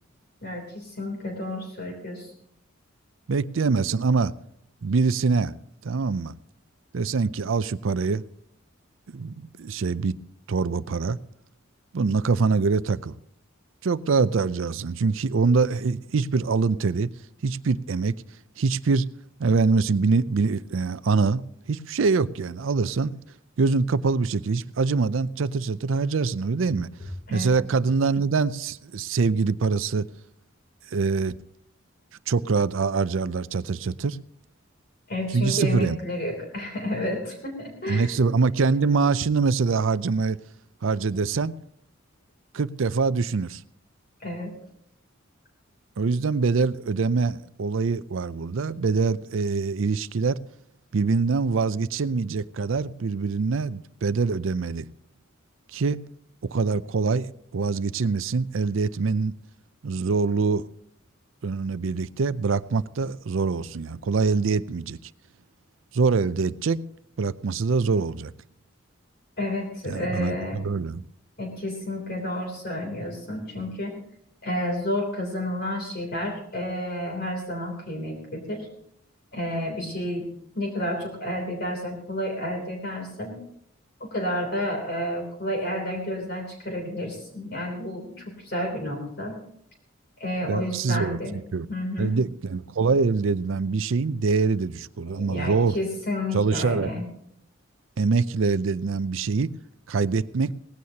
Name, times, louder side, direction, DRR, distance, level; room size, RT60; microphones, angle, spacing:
voice 1, 0.4-2.3 27.3-27.5 35.1-38.1 44.2-44.6 69.4-70.6 71.4-74.0 74.4-78.7 79.3-80.3 80.5-83.4 84.0-89.4 90.2-91.4 91.7-92.2 95.1-97.1, left 1 dB, 50° left, 3.2 m, -31 dB
voice 2, 3.3-4.3 4.8-5.5 5.8-6.3 6.9-8.2 9.1-10.2 10.5-11.2 11.9-13.1 13.8-17.1 17.4-18.1 18.6-19.0 19.4-21.4 21.7-23.2 23.6-26.9 27.3-30.1 30.9-31.3 32.3-34.2 35.3-36.0 37.9-40.4 40.8-41.5 42.5-43.6 46.0-50.4 50.9-54.9 55.7-56.0 56.4-59.3 59.8-60.7 61.4-65.0 65.9-66.8 67.2-68.3 69.9-71.0 90.5-91.2 91.5-91.7 92.0-95.8 96.3-96.9 98.0-99.5 99.9-100.5, right 4 dB, 70° right, 0.5 m, -24 dB
18.5 x 16.0 x 2.9 m
head